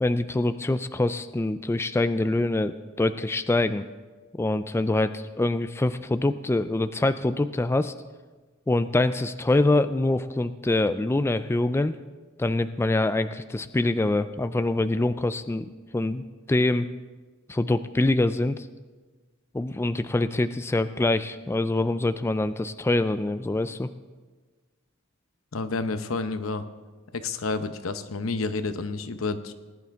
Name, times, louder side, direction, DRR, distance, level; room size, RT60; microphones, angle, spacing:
voice 1, 0.0-3.8 4.4-7.9 8.7-11.9 12.4-16.9 17.5-18.7 19.5-23.9, left 2 dB, 10° left, 11 dB, 0.3 m, -25 dB
voice 2, 25.5-26.6 27.1-29.5, left 3 dB, 85° left, 10 dB, 0.8 m, -30 dB
19.5 x 10.5 x 3.6 m, 1.3 s
head